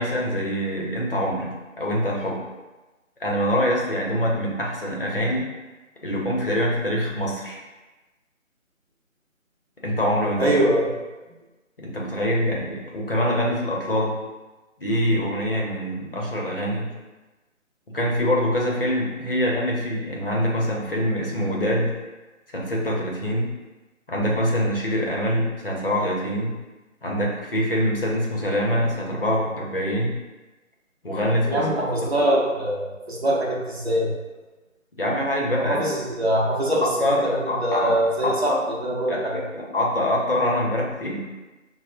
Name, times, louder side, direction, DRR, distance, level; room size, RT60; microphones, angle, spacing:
voice 1, 0.0-2.4 3.2-5.5 6.0-7.6 9.8-10.5 11.8-14.2 14.8-16.9 17.9-21.9 22.5-23.5 24.1-26.6 27.0-30.2 31.0-31.7 34.9-35.8 37.0-37.9 38.5-38.6 39.1-41.2, equal, 45° left, -3 dB, 0.7 m, -24 dB
voice 2, 10.4-10.9 31.5-34.1 35.6-39.5, right 1 dB, 50° right, -3 dB, 0.8 m, -23 dB
5.6 x 2.0 x 2.5 m, 1.2 s
figure-of-eight pair, 165°, 41 cm